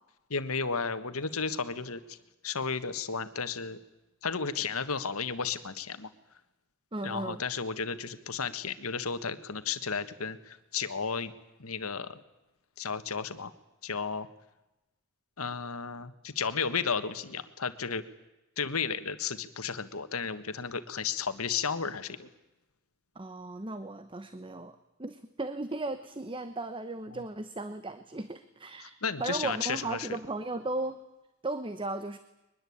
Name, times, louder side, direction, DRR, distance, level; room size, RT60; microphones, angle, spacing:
voice 1, 0.3-2.2 2.4-3.8 4.2-6.1 7.0-11.3 11.6-12.2 12.8-13.5 13.8-14.3 15.4-18.0 18.6-22.3 27.1-27.2 28.8-30.1, left 5 dB, 80° left, 11 dB, 1.5 m, -33 dB
voice 2, 6.9-7.4 23.1-31.0 31.4-32.2, right 2 dB, 25° right, 11 dB, 0.9 m, -36 dB
22.5 x 20.5 x 8.7 m, 0.98 s
head